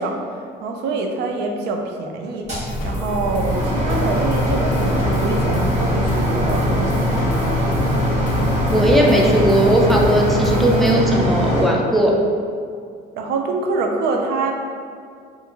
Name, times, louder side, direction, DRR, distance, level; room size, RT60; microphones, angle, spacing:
voice 1, 0.0-7.6 13.2-14.5, right 3 dB, 75° right, 2 dB, 0.4 m, -25 dB
sound 1, 2.5-11.6, equal, 40° right, 1.4 m, -21 dB
sound 2, 2.7-10.9, left 2 dB, 55° left, 0.6 m, -28 dB
voice 2, 8.7-12.1, right 1 dB, ahead, -1 dB, 0.4 m, -17 dB
3.3 x 2.4 x 2.9 m, 2.2 s
cardioid pair, 110°, 17 cm